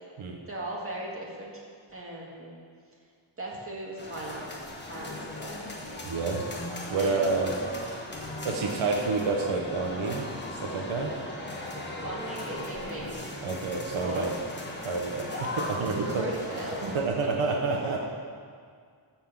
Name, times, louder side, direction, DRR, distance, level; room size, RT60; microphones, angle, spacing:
voice 1, 0.5-1.6 1.9-2.5 3.4-4.6 4.8-5.7 6.9-7.3 12.0-13.2 13.9-14.3 15.3-15.6 15.9-17.0 17.3-18.0, right 1 dB, 25° right, -3 dB, 2.0 m, -38 dB
sound 1, 4.0-17.1, left 1 dB, 20° left, 1.3 m, -38 dB
voice 2, 6.0-6.4 6.9-7.5 8.4-11.2 13.4-14.3 14.8-16.3 16.8-18.0, right 4 dB, 75° right, 1 dB, 1.2 m, -29 dB
14.0 x 4.6 x 7.3 m, 2.1 s
wide cardioid pair, 160°, 49 cm